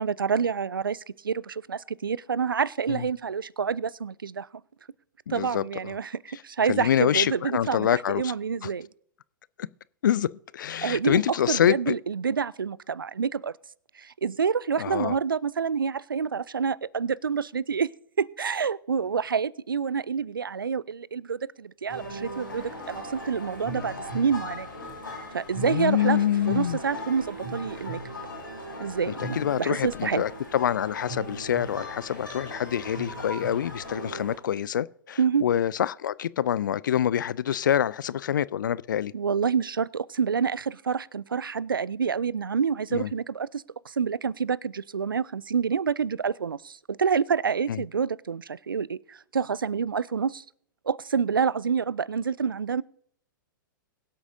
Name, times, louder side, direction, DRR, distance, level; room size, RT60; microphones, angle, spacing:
voice 1, 0.0-4.5 5.3-8.9 10.8-13.6 14.0-17.9 18.2-24.7 25.3-26.2 26.5-28.0 28.8-30.2 35.2-35.4 39.1-50.4 50.9-52.8, right 6 dB, 80° right, 0.4 m, -28 dB
voice 2, 5.3-5.6 6.7-8.3 10.0-11.9 14.8-15.2 25.6-26.8 29.1-39.1 42.9-43.1 47.7-47.8, left 10 dB, 65° left, 0.4 m, -26 dB
sound 1, 21.9-34.3, equal, 85° left, 5.6 m, -38 dB
22.5 x 8.0 x 2.7 m
figure-of-eight pair, 105°, 11 cm